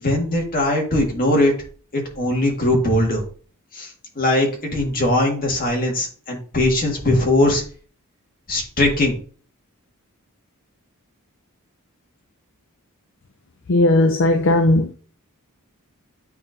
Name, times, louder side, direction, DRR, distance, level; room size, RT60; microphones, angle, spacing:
voice 1, 0.0-1.5 1.9-3.2 3.7-3.9 4.2-7.6 8.5-9.2, left 1 dB, 40° left, 1.8 m, -20 dB
voice 2, 13.7-14.9, left 2 dB, 60° left, 0.5 m, -16 dB
9.1 x 4.0 x 2.6 m
head